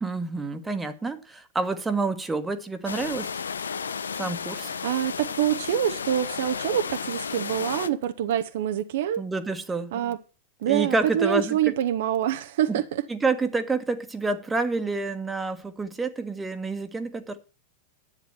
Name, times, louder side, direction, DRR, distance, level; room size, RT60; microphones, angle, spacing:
voice 1, 0.0-3.3 4.1-4.7 9.2-10.1 10.7-11.7 12.7-12.8 13.1-17.4, right 3 dB, 10° right, 1.5 m, -28 dB
sound 1, 2.8-7.9, left 6 dB, 70° left, 0.6 m, -33 dB
voice 2, 4.5-9.3 9.9-10.2 10.6-13.0, right 11 dB, 55° right, 0.9 m, -26 dB
10.5 x 8.5 x 5.8 m
figure-of-eight pair, 90°, 0 cm